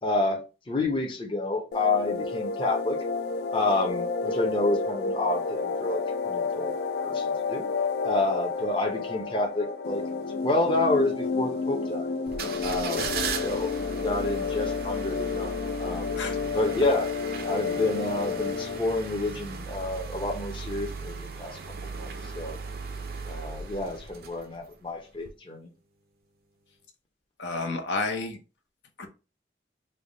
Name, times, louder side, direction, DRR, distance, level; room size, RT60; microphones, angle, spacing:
voice 1, 0.0-3.0 3.5-6.7 7.0-7.7 8.0-10.0 10.4-12.1 12.6-15.5 15.8-16.2 16.5-17.1 17.4-22.6 23.3-25.7, left 2 dB, 30° left, 0.6 m, -29 dB
sound 1, 1.7-18.8, left 4 dB, 60° left, 0.3 m, -30 dB
sound 2, 12.3-24.7 25.2-25.3, right 4 dB, 55° right, 0.5 m, -37 dB
voice 2, 27.4-28.4 29.0-29.1, left 3 dB, 80° left, 0.8 m, -30 dB
3.3 x 2.2 x 3.8 m
head